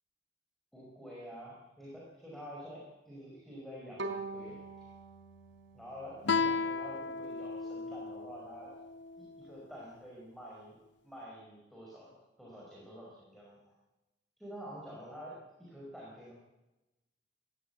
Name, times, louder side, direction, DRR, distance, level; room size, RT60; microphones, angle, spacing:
voice 1, 0.7-4.9 5.7-8.8 9.2-10.8 11.0-13.7 14.4-16.3, equal, ahead, -5 dB, 5.3 m, -48 dB
Bowed string instrument, 4.0-7.1, right 3 dB, 85° right, 3.8 m, -44 dB
Guitar, 6.3-9.5, left 4 dB, 75° left, 0.8 m, -35 dB
21.0 x 15.0 x 8.3 m, 1.0 s
head